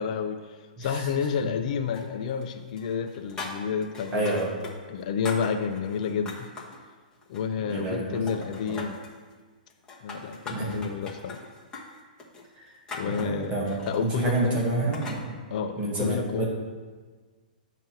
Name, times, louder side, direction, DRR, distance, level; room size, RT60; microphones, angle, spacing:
voice 1, 0.0-4.5 4.9-6.5 7.3-9.0 10.0-11.4 12.9-13.6 13.9-14.6 15.5-16.5, left 6 dB, 50° left, 7 dB, 0.5 m, -30 dB
sound 1, 1.9-2.5 2.8-4.7 5.0-6.8 7.2-8.0 8.3-9.1 9.7-15.2, left 3 dB, 15° left, 1.1 m, -41 dB
voice 2, 4.1-4.5 7.6-8.2 10.5-10.8 12.6-12.7 13.0-15.3 15.8-16.5, right 2 dB, 25° right, -3 dB, 1.5 m, -28 dB
8.7 x 3.0 x 5.8 m, 1.4 s
hypercardioid pair, 135°, 5 cm